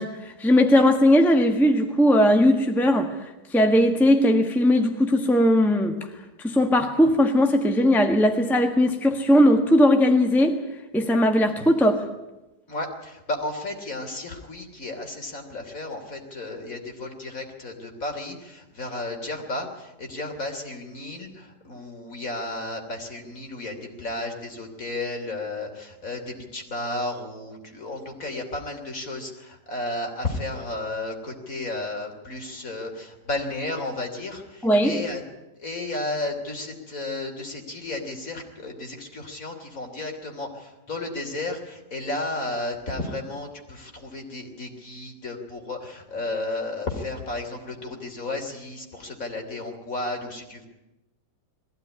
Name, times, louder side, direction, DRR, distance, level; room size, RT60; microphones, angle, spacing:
voice 1, 0.0-6.1 6.4-10.6 10.9-12.0 34.6-35.0, left 1 dB, ahead, 5 dB, 1.3 m, -19 dB
voice 2, 12.7-35.2 35.6-50.7, left 2 dB, 50° left, 3 dB, 3.5 m, -33 dB
21.0 x 15.5 x 9.8 m, 0.97 s
omnidirectional pair, 1.8 m